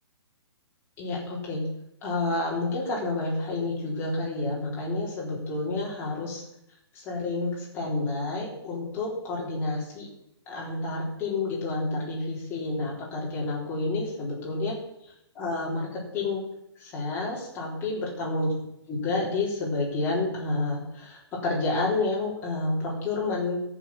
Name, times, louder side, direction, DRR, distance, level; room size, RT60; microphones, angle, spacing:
voice 1, 1.0-1.7 2.0-6.4 6.9-10.1 10.5-14.8 15.0-16.4 16.8-18.5 18.9-23.6, left 2 dB, 15° left, -5 dB, 3.7 m, -29 dB
14.0 x 6.7 x 6.0 m, 0.81 s
hypercardioid pair, 165°, 15 cm